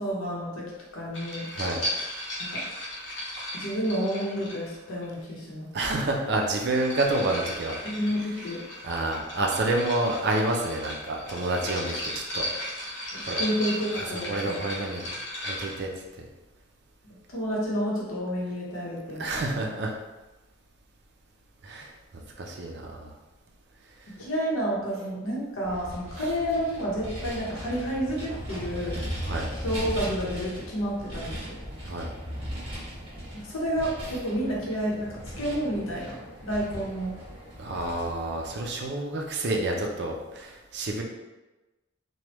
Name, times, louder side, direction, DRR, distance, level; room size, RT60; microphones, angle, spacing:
voice 1, 0.0-1.5 2.4-2.6 3.5-5.7 7.8-8.6 13.1-14.5 17.0-19.6 24.1-29.0 29.6-31.6 33.3-37.1, equal, 90° left, -4 dB, 0.8 m, -30 dB
sound 1, 1.1-5.0 6.3-15.8, left 1 dB, 60° left, 0.8 m, -36 dB
voice 2, 1.5-1.8 5.7-7.8 8.8-12.5 13.2-13.4 13.9-15.0 15.4-15.9 16.2-16.3 19.1-19.9 21.6-23.1 24.0-24.2 26.2-26.3 29.2-29.5 31.8-32.1 37.6-41.0, right 2 dB, 55° right, 0 dB, 0.5 m, -29 dB
Vehicle, 25.6-38.9, equal, 25° right, 1.2 m, -38 dB
3.2 x 2.2 x 3.0 m, 1.1 s
head